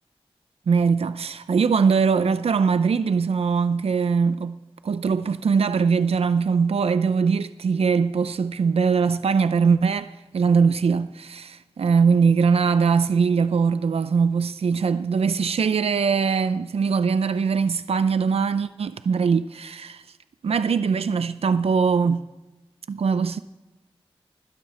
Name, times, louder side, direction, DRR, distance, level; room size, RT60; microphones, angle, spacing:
voice 1, 0.7-4.6 4.8-20.0 20.4-22.2 22.9-23.4, right 5 dB, 80° right, 0.5 m, -21 dB
20.5 x 12.5 x 4.3 m
wide cardioid pair, 65°, 10 cm